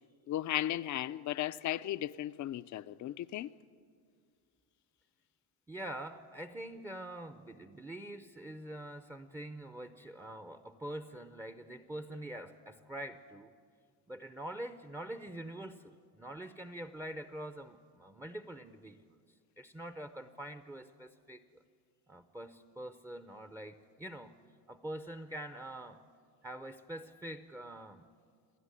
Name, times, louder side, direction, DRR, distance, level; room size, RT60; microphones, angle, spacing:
voice 1, 0.3-3.5, left 13 dB, 40° left, 0.5 m, -35 dB
voice 2, 5.7-13.5 14.1-19.2 19.6-21.6 22.1-24.4 24.7-26.0 26.4-28.1, right 1 dB, 5° right, 0.6 m, -45 dB
28.0 x 11.0 x 9.7 m
cardioid pair, 115°, 46 cm